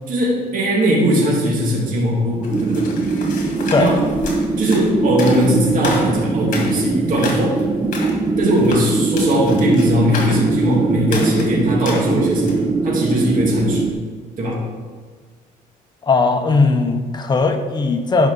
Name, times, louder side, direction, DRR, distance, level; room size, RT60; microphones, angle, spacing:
voice 1, 0.1-2.9 3.8-4.0 4.6-7.6 8.4-13.9 14.4-14.6, equal, 55° right, -3 dB, 2.4 m, -19 dB
sound 1, 2.4-12.7, left 3 dB, 50° left, 2.1 m, -31 dB
sound 2, 2.5-13.9, right 3 dB, 20° right, 0.5 m, -21 dB
voice 2, 16.1-18.3, left 3 dB, 25° left, 5 dB, 0.9 m, -17 dB
10.5 x 5.5 x 4.0 m, 1.5 s
cardioid pair, 110°, 17 cm